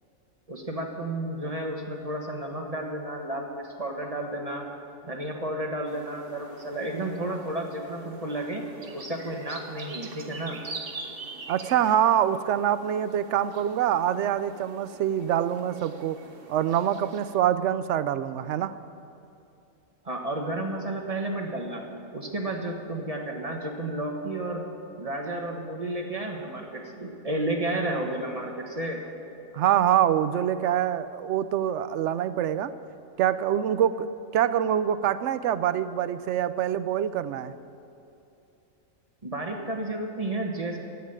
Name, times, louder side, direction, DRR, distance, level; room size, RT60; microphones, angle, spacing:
voice 1, 0.5-4.7 5.0-8.6 8.9-10.6 20.0-21.8 22.1-24.6 25.0-29.0 39.2-40.8, right 1 dB, 30° right, 2 dB, 1.4 m, -32 dB
sound 1, 5.9-17.4, right 3 dB, 45° right, 1.2 m, -44 dB
voice 2, 11.5-16.2 16.5-18.7 29.5-32.7 33.2-34.1 34.3-37.5, right 10 dB, 70° right, 14 dB, 0.8 m, -25 dB
13.5 x 8.6 x 8.9 m, 2.7 s
omnidirectional pair, 1.4 m